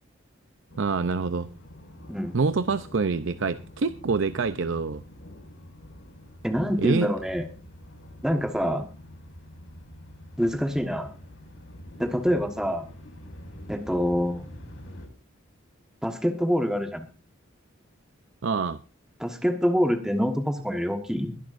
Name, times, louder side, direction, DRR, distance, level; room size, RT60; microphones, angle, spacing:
sound 1, 0.7-15.1, left 1 dB, 75° left, 6.2 m, -46 dB
voice 1, 0.8-1.5 2.3-5.0 6.8-7.1 18.4-18.8, right 4 dB, 65° right, 0.6 m, -26 dB
voice 2, 6.4-7.5 8.2-8.9 10.4-11.1 12.0-12.9 13.7-14.5 16.0-17.1 19.2-21.4, equal, 5° right, 1.3 m, -26 dB
22.5 x 10.5 x 2.6 m
head